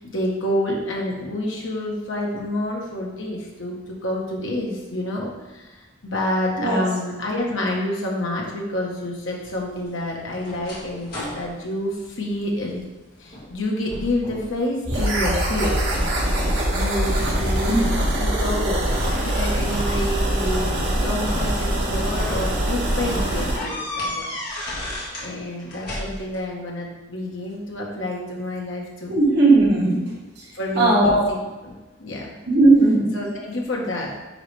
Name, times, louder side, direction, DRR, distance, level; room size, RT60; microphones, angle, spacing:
voice 1, 0.0-12.8 13.2-16.0 16.7-24.3 25.2-29.2 30.5-31.7 32.0-32.3 33.1-34.2, left 1 dB, 80° left, -2 dB, 1.4 m, -28 dB
sound 1, 9.4-12.8 13.3-13.6 13.9-14.6 15.0-15.7 16.3-17.8 18.9-19.1 20.3-21.7 22.2-22.4 22.7-22.8 23.3-25.3 25.6-26.4, left 1 dB, 50° left, 1.9 m, -34 dB
sound 2, 14.8-23.6, right 1 dB, 75° right, 1.9 m, -23 dB
voice 2, 29.1-30.0 30.8-31.3 32.5-33.1, right 2 dB, 55° right, -5 dB, 1.7 m, -16 dB
9.6 x 3.2 x 3.4 m, 1.1 s
head